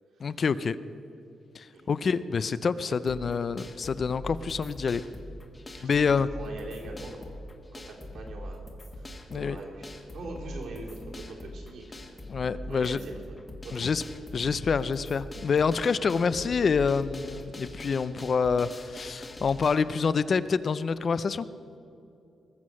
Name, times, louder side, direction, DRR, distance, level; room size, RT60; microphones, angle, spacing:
voice 1, 0.2-0.8 1.6-5.0 5.8-6.3 9.3-9.6 12.3-13.0 13.7-14.0 14.3-21.5, left 5 dB, 40° left, 15 dB, 0.4 m, -27 dB
voice 2, 2.8-3.1 5.6-7.5 7.7-8.6 8.9-12.1 12.4-13.4 13.6-14.0, right 2 dB, 75° right, -3 dB, 3.4 m, -43 dB
sound 1, 3.1-19.7, left 1 dB, 20° left, 1.3 m, -43 dB
20.0 x 7.6 x 6.3 m, 2.7 s
wide cardioid pair, 155°, 0 cm